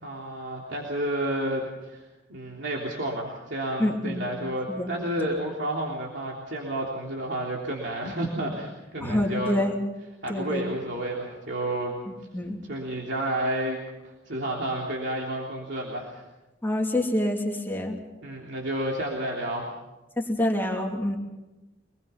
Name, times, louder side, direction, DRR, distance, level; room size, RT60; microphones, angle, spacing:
voice 1, 0.0-9.6 10.2-12.0 12.6-16.3 18.2-19.7, right 1 dB, 65° right, -2 dB, 3.4 m, -31 dB
voice 2, 3.8-4.4 4.7-5.3 9.0-9.7 10.3-10.6 12.3-12.6 16.6-18.0 20.2-21.2, left 1 dB, 10° left, -1 dB, 2.8 m, -27 dB
26.0 x 20.5 x 5.8 m, 1.1 s
head